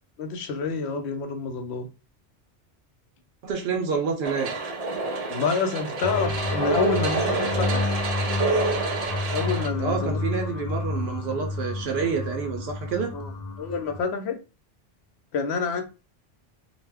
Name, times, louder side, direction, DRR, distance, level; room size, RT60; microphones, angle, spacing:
voice 1, 0.2-1.9 5.3-7.9 9.3-10.2 13.1-13.3 13.6-14.4 15.3-15.8, left 5 dB, 90° left, 0.9 m, -28 dB
voice 2, 3.4-4.5 9.8-13.1, right 5 dB, 80° right, 0.9 m, -28 dB
sound 1, 4.2-9.7, right 3 dB, 50° right, 0.5 m, -28 dB
sound 2, 6.0-14.0, left 2 dB, 55° left, 0.6 m, -30 dB
2.6 x 2.1 x 3.3 m
omnidirectional pair, 1.1 m